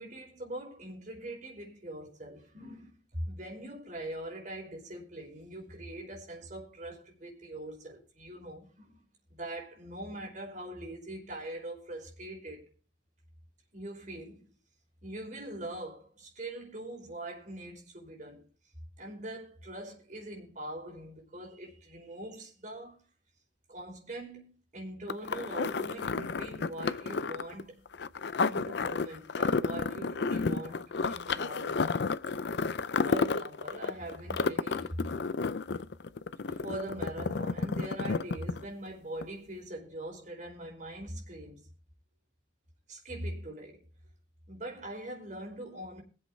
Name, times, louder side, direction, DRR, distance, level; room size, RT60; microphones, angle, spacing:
voice 1, 0.0-9.0 9.3-12.7 13.7-14.5 15.0-18.4 19.0-23.0 23.7-27.8 28.5-32.0 33.0-35.1 35.7-35.8 36.4-41.6 42.9-43.8 44.5-46.0, right 1 dB, 45° right, 5.2 m, -42 dB
sound 1, 25.1-38.9 39.2-39.3, left 4 dB, 70° left, 0.5 m, -31 dB
22.5 x 7.9 x 3.3 m
head